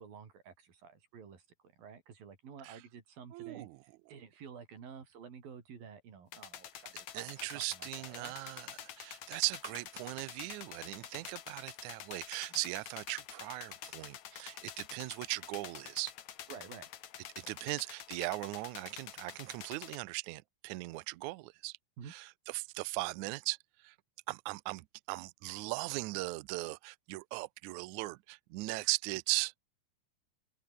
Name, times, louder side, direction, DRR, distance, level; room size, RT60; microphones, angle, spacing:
voice 1, 0.0-1.5 1.8-8.3 12.5-12.6 16.5-16.9 22.0-22.1, right 7 dB, 75° right, 5.5 m, -51 dB
voice 2, 3.3-3.8 7.1-16.1 17.4-21.8 22.1-23.9 24.3-29.5, right 24 dB, 90° right, 1.7 m, -38 dB
sound 1, 6.3-20.0, left 11 dB, 60° left, 2.6 m, -48 dB
omnidirectional pair, 4.2 m